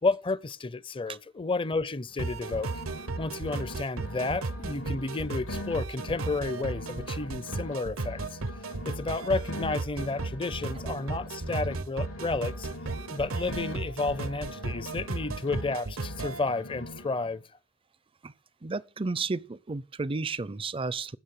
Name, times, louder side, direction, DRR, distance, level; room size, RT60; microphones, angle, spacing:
voice 1, 0.0-2.8 3.2-8.4 8.8-12.7 13.1-17.4, left 3 dB, 25° left, 0.6 m, -31 dB
sound 1, 2.1-3.7 4.0-7.7 8.0-11.7 12.0-15.7 16.0-17.4, left 1 dB, 90° left, 2.7 m, -42 dB
sound 2, 2.2-16.4, right 3 dB, 80° right, 1.0 m, -35 dB
voice 2, 18.6-21.2, right 3 dB, 25° right, 0.5 m, -33 dB
16.5 x 6.4 x 6.5 m
head